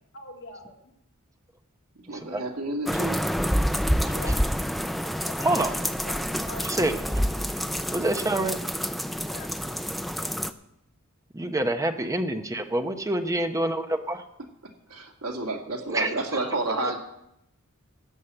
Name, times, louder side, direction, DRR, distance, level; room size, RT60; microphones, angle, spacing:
voice 1, 0.1-1.0 4.1-4.4 5.2-6.8 9.3-9.5 15.7-17.0, left 2 dB, 60° left, 0 dB, 2.2 m, -44 dB
voice 2, 2.1-3.2 14.9-17.0, right 2 dB, 85° right, 1 dB, 2.4 m, -30 dB
sound 1, 2.9-10.5, equal, ahead, 0.4 m, -28 dB
voice 3, 6.6-6.9 7.9-8.6 11.3-14.2 15.9-16.1 16.8-16.9, right 1 dB, 15° right, 7 dB, 0.8 m, -26 dB
12.5 x 8.4 x 7.7 m, 0.81 s
head